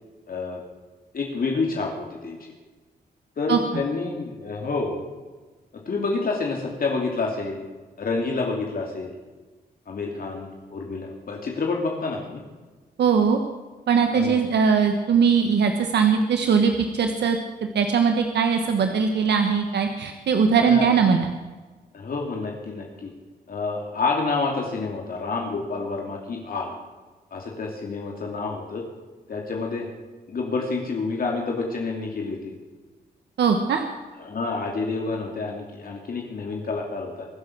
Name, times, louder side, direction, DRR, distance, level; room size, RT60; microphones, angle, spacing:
voice 1, 0.3-0.6 1.1-2.5 3.4-5.1 5.9-7.6 8.0-9.1 9.9-12.4 14.1-14.4 20.6-20.9 21.9-23.1 23.5-26.7 27.3-28.8 29.3-29.9 30.3-32.5 34.2-37.3, left 3 dB, 60° left, 0 dB, 2.8 m, -28 dB
voice 2, 13.0-13.4 13.9-17.4 17.7-21.3 33.4-33.8, right 6 dB, 85° right, 5 dB, 1.3 m, -20 dB
23.5 x 7.9 x 6.3 m, 1.3 s
wide cardioid pair, 115°, 17 cm